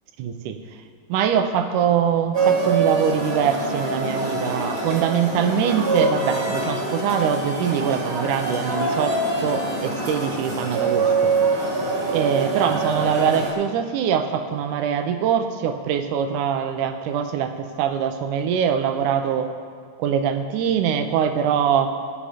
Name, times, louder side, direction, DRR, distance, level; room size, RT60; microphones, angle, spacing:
voice 1, 0.2-0.6 1.1-11.3 12.1-19.5 20.0-21.9, right 8 dB, 75° right, 7 dB, 2.0 m, -23 dB
sound 1, 2.3-13.5, right 3 dB, 40° right, 3.4 m, -24 dB
18.5 x 7.6 x 5.0 m, 2.1 s
omnidirectional pair, 3.9 m